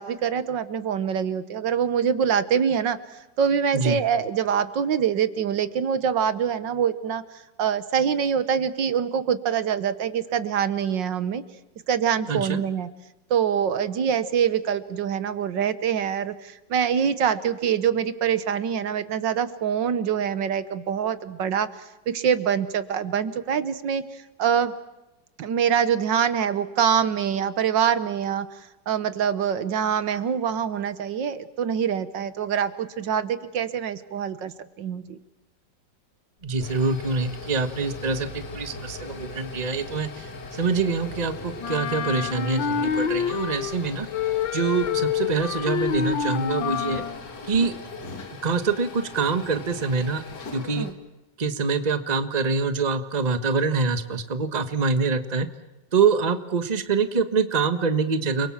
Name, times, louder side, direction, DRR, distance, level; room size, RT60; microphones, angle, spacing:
voice 1, 0.0-11.4 11.9-12.9 13.3-24.7 25.4-35.2 50.8-50.9, right 8 dB, 75° right, 13 dB, 1.7 m, -25 dB
voice 2, 12.3-12.6 36.4-44.1 44.5-47.0 47.5-47.7 48.4-50.2 50.5-50.9 51.4-55.5 55.9-58.5, right 4 dB, 25° right, 10 dB, 1.3 m, -25 dB
sound 1, 36.4-50.9, left 3 dB, 65° left, 2.8 m, -39 dB
Wind instrument woodwind instrument, 41.6-43.8 44.1-47.2, left 7 dB, 90° left, 2.0 m, -27 dB
30.0 x 22.5 x 7.3 m, 0.98 s
omnidirectional pair, 2.0 m